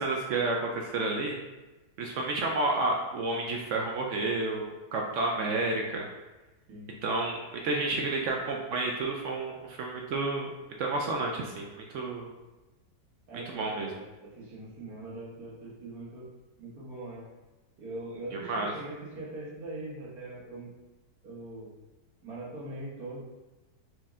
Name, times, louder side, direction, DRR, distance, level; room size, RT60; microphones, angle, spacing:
voice 1, 0.0-1.4 2.0-6.1 7.0-10.5 10.8-12.3 13.5-13.9 18.3-18.7, right 2 dB, 85° right, 0 dB, 0.6 m, -30 dB
voice 2, 13.3-16.3 16.6-17.3 17.8-20.7 21.2-21.7 22.2-23.2, right 2 dB, 60° right, -6 dB, 1.6 m, -42 dB
4.4 x 3.1 x 3.6 m, 1.1 s
omnidirectional pair, 1.9 m